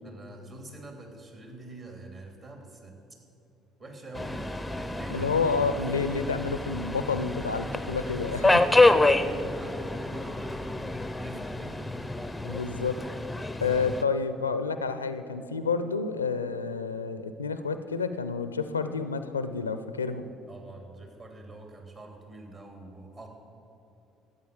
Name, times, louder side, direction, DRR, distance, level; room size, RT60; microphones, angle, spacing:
voice 1, 0.0-3.0 3.8-5.3 8.2-10.8 11.2-11.9 20.5-23.3, right 2 dB, 40° right, 2 dB, 3.0 m, -45 dB
Subway metro underground, 4.1-14.0, left 2 dB, 10° left, 0.6 m, -27 dB
voice 2, 5.1-8.5 12.4-13.0 13.6-20.3, left 5 dB, 85° left, 11 dB, 0.5 m, -29 dB
13.0 x 8.5 x 8.0 m, 2.8 s
figure-of-eight pair, 55°, 0 cm